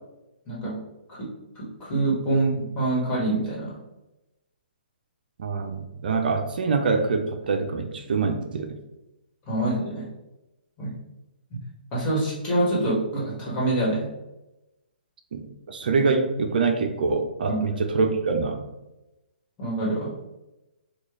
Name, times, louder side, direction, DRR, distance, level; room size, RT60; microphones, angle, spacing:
voice 1, 1.5-3.7 9.5-10.0 10.8-10.9 11.9-14.1 17.5-17.6 19.6-20.1, right 2 dB, 20° left, -6 dB, 1.4 m, -25 dB
voice 2, 5.4-8.8 15.3-18.7, right 4 dB, 65° right, 5 dB, 0.5 m, -25 dB
3.1 x 2.3 x 3.7 m, 0.96 s
hypercardioid pair, 135°, 5 cm